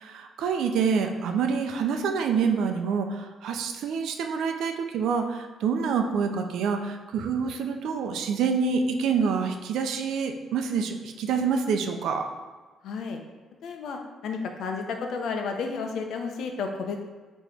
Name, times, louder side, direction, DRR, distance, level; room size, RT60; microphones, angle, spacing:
voice 1, 0.0-12.3, right 6 dB, 80° right, 5 dB, 0.6 m, -27 dB
voice 2, 12.8-13.2 13.6-17.0, left 5 dB, 75° left, 3 dB, 0.8 m, -32 dB
8.4 x 3.1 x 3.6 m, 1.3 s
cardioid pair, 90°, 0 cm